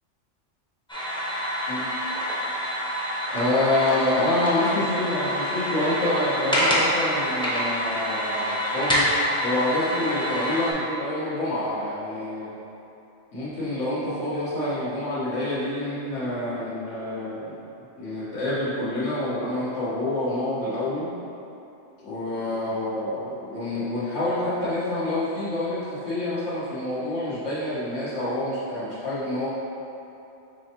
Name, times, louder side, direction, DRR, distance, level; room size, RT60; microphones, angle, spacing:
sound 1, 0.9-10.7, equal, 5° left, 0.6 m, -27 dB
voice 1, 3.3-9.1 9.4-12.5 13.3-17.6 18.0-21.1 22.0-29.5, left 1 dB, 85° left, -10 dB, 1.6 m, -27 dB
5.5 x 3.3 x 2.9 m, 2.9 s
omnidirectional pair, 1.2 m